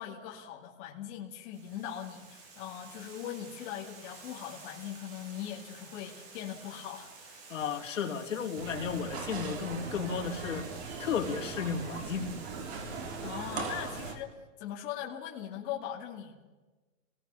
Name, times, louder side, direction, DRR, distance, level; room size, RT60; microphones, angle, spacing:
voice 1, 0.0-7.4 13.2-14.3 14.6-16.5, left 10 dB, 20° left, -3 dB, 2.3 m, -40 dB
Water, 1.5-14.1, right 4 dB, 30° right, 3.2 m, -51 dB
voice 2, 7.5-10.7 11.0-12.3 13.8-13.9, left 6 dB, 65° left, 0 dB, 3.9 m, -34 dB
sound 1, 8.6-14.2, right 4 dB, 50° right, 3.4 m, -39 dB
29.0 x 19.5 x 6.9 m, 1.2 s
hypercardioid pair, 180°, 40 cm